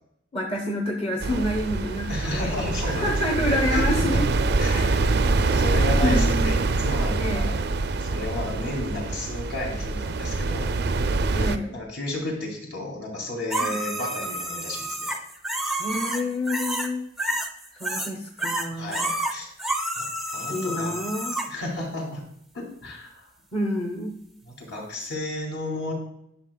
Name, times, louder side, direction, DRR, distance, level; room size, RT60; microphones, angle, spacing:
voice 1, 0.3-2.6 2.8-4.3 4.6-4.9 6.0-6.6 7.2-7.5 11.3-11.8 13.6-13.8 15.8-17.1 17.7-19.1 20.5-21.4 23.5-24.1, left 1 dB, 30° left, 0 dB, 0.8 m, -28 dB
sound 1, 1.2-11.6, right 3 dB, 55° right, 0.4 m, -24 dB
voice 2, 2.1-4.2 4.6-5.1 5.4-7.6 8.0-10.7 11.3-15.1 17.9-18.0 18.8-19.5 20.0-20.9 21.5-22.2 22.5-23.3 24.6-25.9, left 2 dB, 70° left, -2 dB, 2.6 m, -33 dB
sound 2, 13.5-16.9 17.2-18.1 18.4-21.5 25.0-25.1, right 1 dB, ahead, 0.5 m, -29 dB
11.0 x 6.1 x 2.2 m, 0.77 s
head